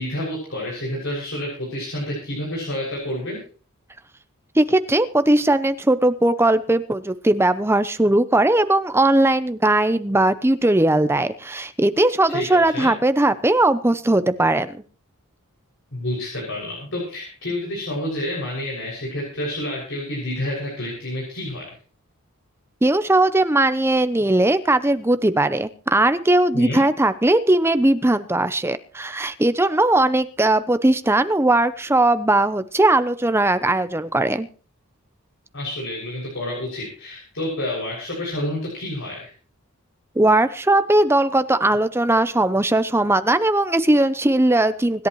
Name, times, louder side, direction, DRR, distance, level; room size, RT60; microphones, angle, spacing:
voice 1, 0.0-3.4 12.3-12.9 15.9-21.7 26.5-26.8 35.5-39.3, left 1 dB, 60° left, -3 dB, 6.5 m, -29 dB
voice 2, 4.6-14.8 22.8-34.5 40.2-45.1, right 2 dB, 10° right, 11 dB, 0.7 m, -19 dB
25.5 x 11.0 x 3.1 m, 0.40 s
head